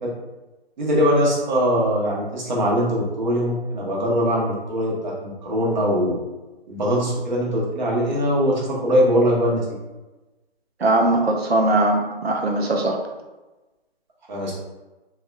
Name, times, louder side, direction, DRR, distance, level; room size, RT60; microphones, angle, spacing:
voice 1, 0.8-6.1 6.7-9.6 14.3-14.5, equal, 45° right, -4 dB, 0.9 m, -21 dB
voice 2, 10.8-13.0, right 2 dB, 80° right, 2 dB, 0.6 m, -20 dB
3.4 x 2.3 x 2.3 m, 1.1 s
figure-of-eight pair, 140°, 31 cm